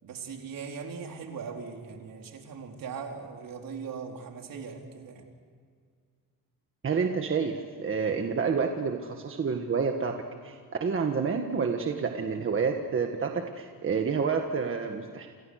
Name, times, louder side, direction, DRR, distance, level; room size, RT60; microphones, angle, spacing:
voice 1, 0.0-5.3, right 5 dB, 70° right, 2 dB, 4.3 m, -40 dB
voice 2, 6.8-10.1 10.4-15.3, right 5 dB, 35° right, 3 dB, 1.7 m, -29 dB
29.5 x 28.0 x 6.6 m, 2.1 s
wide cardioid pair, 170°, 35 cm